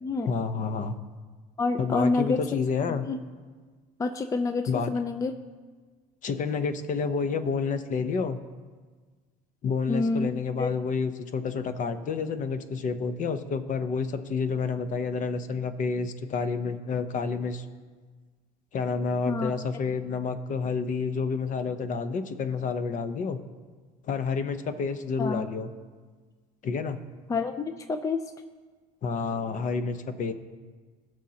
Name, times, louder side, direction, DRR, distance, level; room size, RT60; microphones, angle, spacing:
voice 1, 0.3-1.0 1.8-3.1 4.7-4.9 6.2-8.4 9.6-17.6 18.7-23.4 24.0-25.7 26.6-27.0 29.0-30.3, left 5 dB, 45° left, 10 dB, 0.8 m, -29 dB
voice 2, 1.6-2.4 3.1-3.2 4.0-5.3 9.9-10.3 10.6-10.7 19.3-19.5 25.2-25.5 27.3-28.2, left 3 dB, 15° left, 8 dB, 0.4 m, -28 dB
19.0 x 6.4 x 2.9 m, 1.5 s
supercardioid pair, 95°, 19 cm